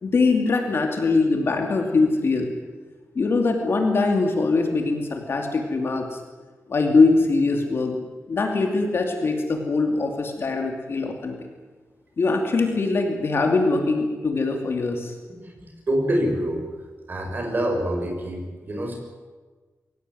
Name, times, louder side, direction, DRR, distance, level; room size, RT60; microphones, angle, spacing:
voice 1, 0.0-2.5 3.1-6.2 6.7-8.0 8.3-11.4 12.2-15.2, left 3 dB, 50° left, 3 dB, 2.7 m, -22 dB
voice 2, 15.4-16.6 17.1-19.0, right 1 dB, 35° right, 2 dB, 5.9 m, -26 dB
24.0 x 17.0 x 9.3 m, 1.3 s
wide cardioid pair, 175°, 5 cm